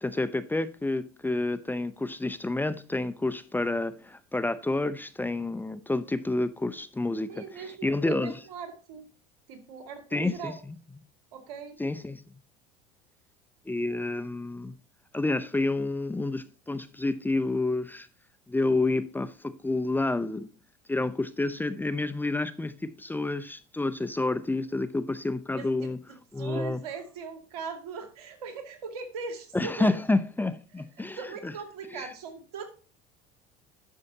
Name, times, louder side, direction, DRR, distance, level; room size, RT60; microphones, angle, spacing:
voice 1, 0.0-7.4 7.8-8.4 10.1-10.5 11.8-12.2 13.7-14.7 15.1-18.1 18.5-20.5 20.9-26.0 26.3-26.8 29.5-31.2 31.4-31.5 31.9-32.1, left 2 dB, 10° left, 0.7 m, -29 dB
voice 2, 7.3-9.1 9.5-10.6 11.3-11.8 25.5-29.9 31.2-32.7, right 5 dB, 85° right, 2.2 m, -40 dB
11.0 x 6.5 x 2.9 m
supercardioid pair, 90°, 19 cm